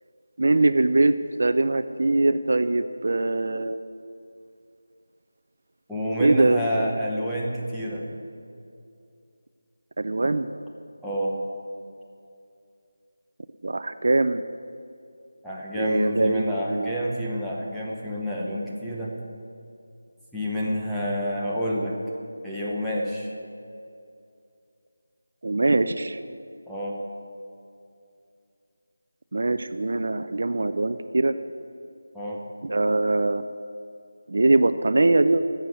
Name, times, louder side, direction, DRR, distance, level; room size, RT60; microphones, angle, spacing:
voice 1, 0.4-3.8 6.2-7.0 10.0-10.5 13.6-14.4 15.7-16.9 25.4-26.2 29.3-31.3 32.6-33.5 34.3-35.4, right 2 dB, 45° right, 11 dB, 0.5 m, -22 dB
voice 2, 5.9-8.1 11.0-11.3 15.4-19.1 20.3-21.9 22.4-23.3 26.7-27.0 32.1-32.4, equal, ahead, -9 dB, 0.9 m, -28 dB
14.5 x 7.1 x 9.5 m, 2.5 s
figure-of-eight pair, 180°, 0 cm